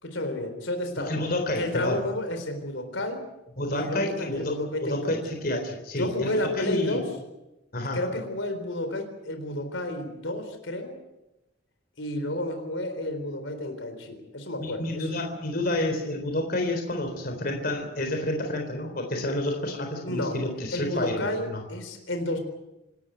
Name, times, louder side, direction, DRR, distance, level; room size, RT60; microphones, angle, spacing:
voice 1, 0.0-1.1 1.6-3.2 3.7-5.2 6.0-7.1 7.9-11.0 12.0-15.0 20.0-20.4 20.7-22.4, left 1 dB, 70° left, 7 dB, 4.0 m, -31 dB
voice 2, 1.0-2.0 3.6-7.0 7.7-8.0 14.6-21.6, left 1 dB, 45° left, 4 dB, 3.8 m, -29 dB
27.0 x 13.5 x 9.2 m, 0.95 s
head